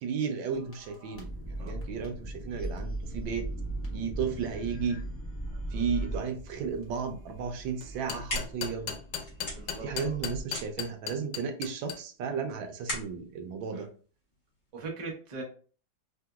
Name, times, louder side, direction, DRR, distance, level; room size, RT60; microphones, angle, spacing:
voice 1, 0.0-3.5 3.9-5.0 5.7-8.9 9.8-13.9, right 6 dB, 85° right, 6 dB, 1.3 m, -34 dB
sound 1, 0.5-10.4, right 1 dB, 10° left, 0.6 m, -39 dB
sound 2, 7.8-11.9, left 8 dB, 75° left, 1.2 m, -36 dB
sound 3, 7.9-14.7, left 1 dB, 35° left, 1.1 m, -41 dB
voice 2, 9.5-10.1 13.7-13.9 14.7-15.4, right 4 dB, 60° right, 0 dB, 0.4 m, -41 dB
3.4 x 2.8 x 2.3 m, 0.40 s
omnidirectional pair, 2.1 m